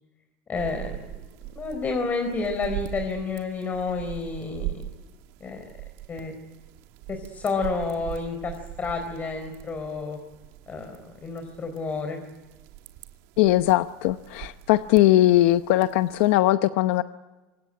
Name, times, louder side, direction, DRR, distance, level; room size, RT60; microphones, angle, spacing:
voice 1, 0.5-1.0 1.5-4.9 5.4-5.7 6.1-6.3 7.1-10.2 10.7-12.2, left 4 dB, 25° left, 5 dB, 4.2 m, -30 dB
sound 1, 0.5-16.4, right 14 dB, 70° right, 2.3 m, -41 dB
voice 2, 13.4-17.0, left 15 dB, 80° left, 11 dB, 0.8 m, -20 dB
26.0 x 21.0 x 9.1 m, 1.2 s
supercardioid pair, 125°, 6 cm